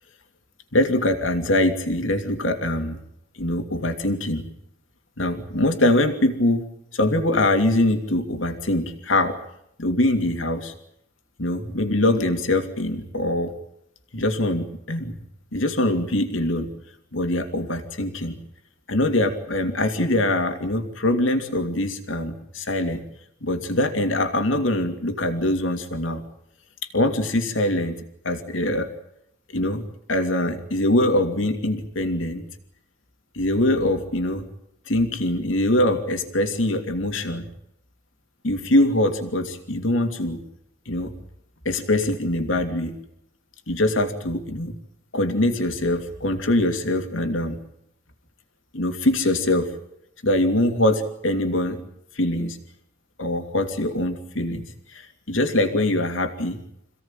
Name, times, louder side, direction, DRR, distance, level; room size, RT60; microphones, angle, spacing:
voice 1, 0.7-3.0 3.4-4.5 5.2-6.6 6.9-9.4 9.8-10.7 11.4-13.5 14.1-15.2 15.5-16.7 17.1-18.3 18.9-23.0 23.4-26.2 26.9-28.9 29.5-32.4 33.3-34.5 34.9-37.5 38.4-40.4 40.9-41.1 41.6-42.9 43.7-44.7 45.1-47.6 48.7-49.7 50.2-51.8 52.1-52.6 53.2-56.6, left 1 dB, 85° left, 6 dB, 2.8 m, -23 dB
27.5 x 17.0 x 9.1 m, 0.76 s
head